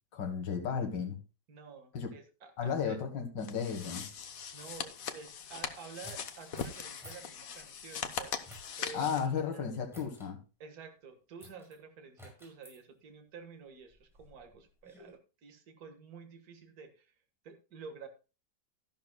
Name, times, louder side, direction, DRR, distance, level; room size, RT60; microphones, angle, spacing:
voice 1, 0.1-1.2 1.9-2.1 2.6-4.1 8.9-10.4, left 6 dB, 85° left, 3 dB, 2.2 m, -34 dB
voice 2, 1.5-3.0 4.5-9.7 10.6-17.1 17.4-18.1, right 5 dB, 55° right, 5 dB, 2.0 m, -50 dB
sound 1, 3.4-9.3, left 7 dB, 55° left, 1.3 m, -41 dB
sound 2, 6.0-7.3 8.4-8.8 9.9-10.3 11.4-11.7 12.2-12.8 13.7-15.1, equal, ahead, 5.0 m, -53 dB
12.5 x 11.5 x 2.2 m, 0.31 s
omnidirectional pair, 1.9 m